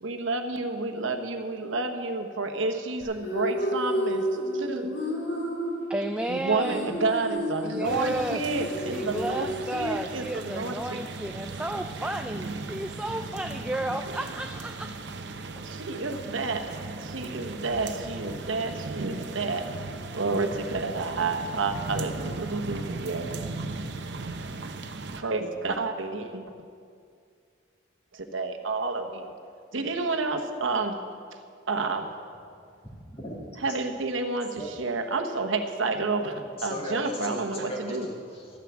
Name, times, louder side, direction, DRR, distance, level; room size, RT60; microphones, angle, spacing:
voice 1, 0.0-4.3 4.5-4.9 6.3-11.0 15.6-19.7 20.1-23.4 25.2-26.5 28.1-29.3 29.7-31.0 31.7-32.1 33.6-38.1, right 3 dB, 80° right, 5 dB, 1.1 m, -30 dB
sound 1, 3.0-10.0, equal, 65° left, 3.6 m, -31 dB
voice 2, 5.9-6.9 7.6-8.4 8.9-14.9 15.6-15.7, right 1 dB, 5° right, 6 dB, 0.3 m, -32 dB
sound 2, 7.8-25.2, right 3 dB, 60° right, 0.8 m, -37 dB
voice 3, 33.1-33.8 34.5-34.7 36.6-38.6, equal, 30° left, -2 dB, 2.4 m, -37 dB
13.5 x 9.4 x 7.2 m, 2.2 s
head